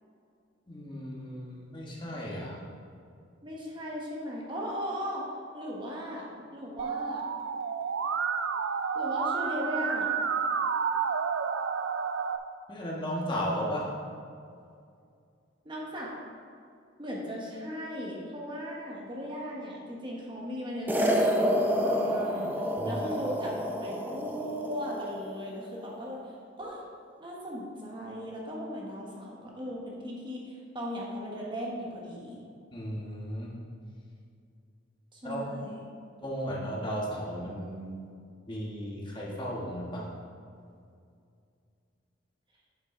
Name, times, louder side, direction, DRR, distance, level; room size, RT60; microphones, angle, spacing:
voice 1, 0.7-2.6 12.7-13.9 22.8-23.0 32.7-33.6 35.2-35.4 36.2-38.0 38.5-40.1, equal, 25° left, -4 dB, 1.4 m, -35 dB
voice 2, 3.4-5.2 5.5-6.3 6.5-7.3 8.9-10.1 15.6-16.1 17.0-26.8 27.2-32.4 35.1-35.9, equal, 25° right, -3 dB, 1.3 m, -37 dB
Musical instrument, 6.8-12.4, right 6 dB, 75° right, 0.4 m, -30 dB
sound 1, 20.9-25.3, equal, 10° right, 0.6 m, -29 dB
8.4 x 7.7 x 3.8 m, 2.4 s
head